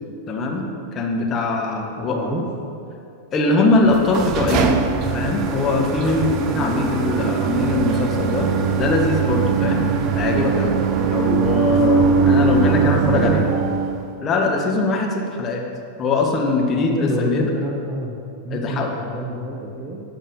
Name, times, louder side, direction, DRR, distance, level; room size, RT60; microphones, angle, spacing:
voice 1, 0.3-2.2 3.3-4.8 5.1-8.5 8.7-13.4 14.2-15.6 16.0-17.5 18.5-18.9, left 3 dB, 25° left, 1 dB, 1.4 m, -21 dB
voice 2, 2.0-2.5 6.5-6.8 12.8-13.4 16.8-18.2 18.4-20.0, equal, 15° right, -4 dB, 1.2 m, -28 dB
sound 1, 3.8-14.1, right 6 dB, 35° right, 0.7 m, -21 dB
11.0 x 5.8 x 7.1 m, 2.5 s
figure-of-eight pair, 90°, 0 cm